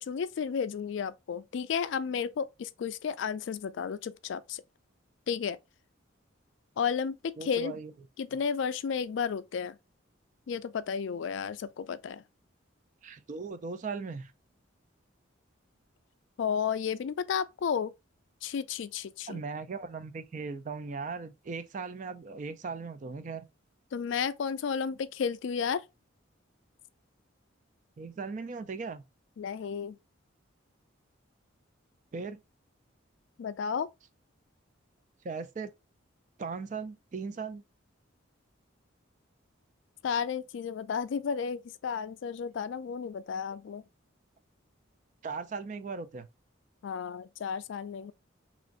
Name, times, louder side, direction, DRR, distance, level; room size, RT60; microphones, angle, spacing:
voice 1, 0.0-4.6 5.3-5.6 6.8-7.1 7.4-7.8 8.2-9.8 10.5-12.2 16.4-17.9 18.4-19.4 23.9-25.8 29.4-30.0 33.4-33.9 40.0-43.8 46.8-48.1, left 6 dB, 65° left, 0.3 m, -32 dB
voice 2, 7.4-7.9 13.0-14.3 19.3-23.4 28.0-29.0 32.1-32.4 35.2-35.7 36.4-37.6 45.2-46.3, right 4 dB, 40° right, 0.3 m, -38 dB
3.0 x 2.5 x 3.7 m
head